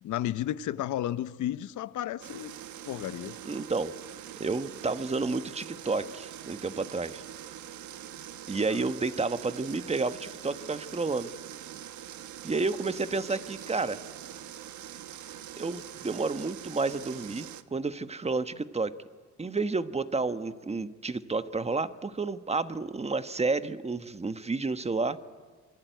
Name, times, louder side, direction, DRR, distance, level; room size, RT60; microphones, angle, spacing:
voice 1, 0.0-2.5 2.8-3.4 8.7-8.8, left 12 dB, 75° left, 0.9 m, -33 dB
sound 1, 2.2-17.6, right 11 dB, 75° right, 1.2 m, -44 dB
voice 2, 3.4-3.9 4.4-7.2 8.5-11.3 12.4-14.0 15.6-18.9 19.4-25.2, right 3 dB, 20° right, 1.2 m, -30 dB
27.5 x 23.0 x 9.3 m
cardioid pair, 90°, 30 cm